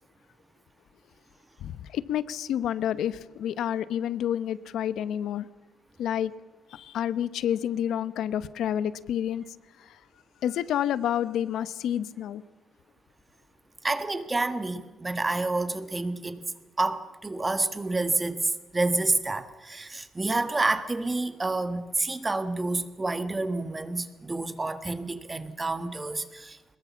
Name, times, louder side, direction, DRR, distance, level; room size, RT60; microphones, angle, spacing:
voice 1, 1.6-5.5 6.0-6.3 6.7-9.4 10.4-12.4, left 10 dB, 80° left, 0.9 m, -29 dB
voice 2, 13.8-16.4 16.8-26.6, right 2 dB, 15° right, 1.5 m, -29 dB
23.0 x 21.0 x 7.2 m
cardioid pair, 140°, 0 cm